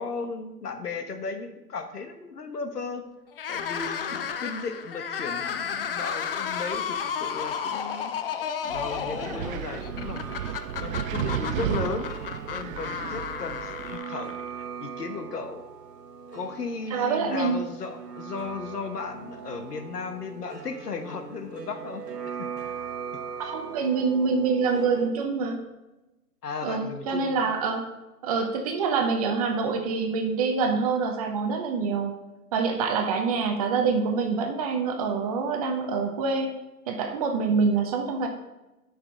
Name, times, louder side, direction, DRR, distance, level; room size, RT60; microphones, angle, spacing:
voice 1, 0.0-3.1 3.5-8.1 8.6-12.2 12.5-15.6 16.3-22.5 23.4-23.5 26.4-27.4, left 4 dB, 80° left, 7 dB, 1.2 m, -36 dB
sound 1, 3.3-14.6, left 7 dB, 40° left, 0.5 m, -33 dB
Wind, 8.7-14.0, right 11 dB, 60° right, 0.5 m, -33 dB
sound 2, 8.9-25.1, right 6 dB, 90° right, 1.2 m, -40 dB
voice 2, 16.9-17.6 23.4-25.6 26.6-27.9 28.2-32.1 32.5-36.6 36.9-38.3, right 5 dB, 25° right, 4 dB, 0.7 m, -26 dB
9.7 x 5.9 x 3.7 m, 1.0 s
hypercardioid pair, 135°, 47 cm